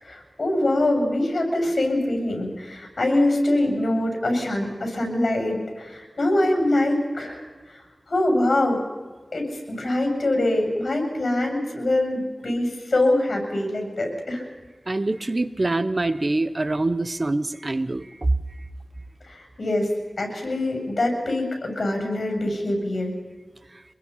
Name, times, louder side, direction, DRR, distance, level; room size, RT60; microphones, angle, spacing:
voice 1, 0.0-7.8 8.1-8.8 9.3-14.4 19.2-19.9 20.2-23.1, left 1 dB, 70° left, 3 dB, 7.8 m, -24 dB
voice 2, 14.9-18.3, right 2 dB, 45° right, 13 dB, 1.1 m, -24 dB
26.0 x 21.5 x 5.7 m, 1.4 s
wide cardioid pair, 65°, 0 cm